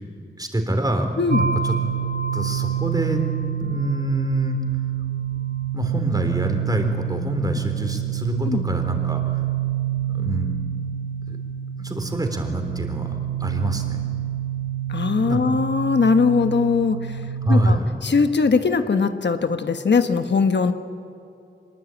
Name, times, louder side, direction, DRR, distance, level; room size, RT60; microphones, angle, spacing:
voice 1, 0.4-1.1 1.4-1.8 2.3-3.2 3.6-4.6 5.7-9.2 10.0-10.6 11.3-11.4 11.8-13.1 13.4-14.0 15.2-15.4 17.4-17.8, right 1 dB, 20° right, 4 dB, 3.5 m, -25 dB
sound 1, 1.3-17.8, right 10 dB, 50° right, 1.0 m, -27 dB
voice 2, 14.9-17.2 17.5-17.8 18.0-20.7, left 5 dB, 70° left, 8 dB, 1.2 m, -20 dB
24.0 x 21.0 x 9.0 m, 2.5 s
wide cardioid pair, 95°, 19 cm